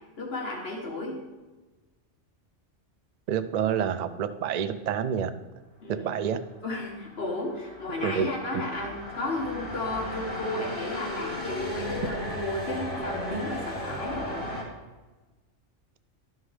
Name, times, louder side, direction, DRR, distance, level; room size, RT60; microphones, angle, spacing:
voice 1, 0.2-1.2 5.8-6.3 6.6-14.5, left 2 dB, 55° left, -1 dB, 1.3 m, -33 dB
voice 2, 3.3-5.3 5.9-6.4 8.0-8.3 8.5-8.6, right 8 dB, 75° right, 12 dB, 0.3 m, -28 dB
sound 1, 6.7-14.6, left 1 dB, 25° left, 2.7 m, -36 dB
12.5 x 5.5 x 3.2 m, 1.2 s
omnidirectional pair, 1.3 m